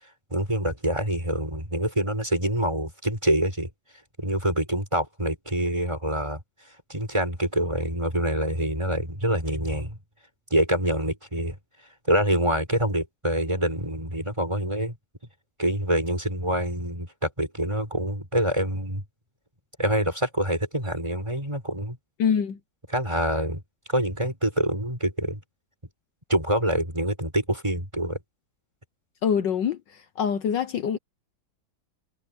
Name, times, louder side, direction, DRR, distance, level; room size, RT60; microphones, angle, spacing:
voice 1, 0.3-3.7 4.2-6.4 6.9-10.0 10.5-11.5 12.1-15.0 15.6-19.0 19.8-22.0 22.9-23.6 23.9-25.4 26.3-28.2, right 1 dB, 15° right, 6.1 m, -26 dB
voice 2, 22.2-22.6 29.2-29.8 30.2-31.0, left 7 dB, 70° left, 1.6 m, -24 dB
omnidirectional pair, 2.1 m